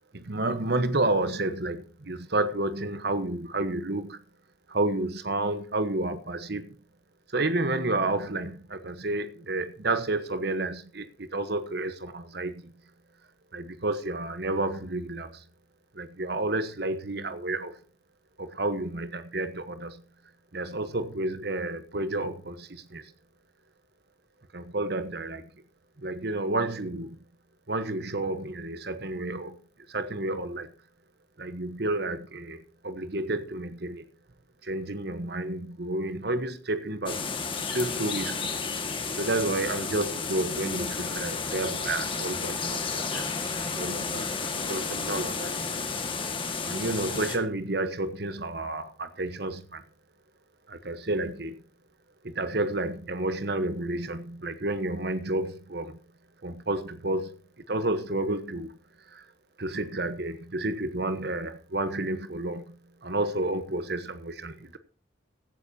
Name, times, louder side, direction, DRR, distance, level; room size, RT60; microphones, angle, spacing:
voice 1, 0.1-4.2 4.7-6.8 7.3-12.7 13.5-15.4 15.9-17.8 18.4-20.0 20.5-23.1 24.5-25.5 26.0-27.2 27.7-29.6 29.9-30.7 31.4-34.1 34.6-37.3 37.7-38.5 39.2-45.7 46.6-49.8 50.7-51.6 52.2-56.0 56.4-57.4 57.7-58.7 59.1-59.3 59.6-64.8, right 2 dB, 55° right, 1.2 m, -31 dB
sound 1, 37.1-47.4, left 4 dB, 25° left, 1.8 m, -32 dB
16.0 x 13.5 x 2.8 m
head